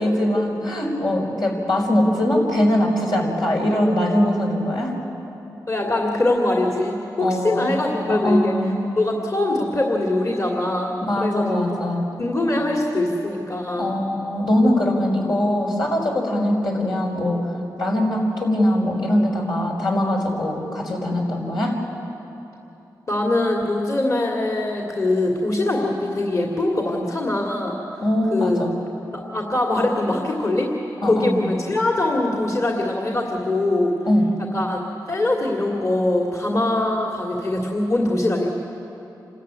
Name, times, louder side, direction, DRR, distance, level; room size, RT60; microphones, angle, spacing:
voice 1, 0.0-5.0 7.2-8.7 11.0-12.1 13.8-17.5 17.8-21.8 28.0-28.8 31.0-31.5 34.1-34.3, left 1 dB, 80° left, -2 dB, 5.1 m, -21 dB
voice 2, 5.7-8.5 9.0-11.8 12.2-13.9 23.1-27.8 28.3-28.7 29.1-30.7 31.0-33.9 34.5-34.8 35.1-38.5, left 2 dB, 45° left, 0 dB, 2.5 m, -22 dB
26.5 x 14.0 x 9.6 m, 3.0 s
cardioid pair, 65°, 7 cm